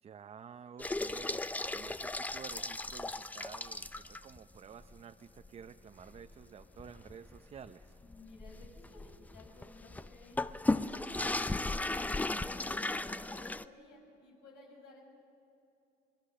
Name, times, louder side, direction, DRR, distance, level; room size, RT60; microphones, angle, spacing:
voice 1, 0.0-8.0, right 7 dB, 40° right, 7 dB, 0.7 m, -51 dB
sound 1, 0.8-4.4 4.8-4.9 5.4-5.5 6.0-13.7, left 2 dB, 10° left, 0.5 m, -36 dB
voice 2, 8.0-10.4 10.8-11.9 12.2-15.0, left 2 dB, 85° left, 0 dB, 6.7 m, -56 dB
26.5 x 21.0 x 6.8 m, 2.8 s
cardioid pair, 110°, 17 cm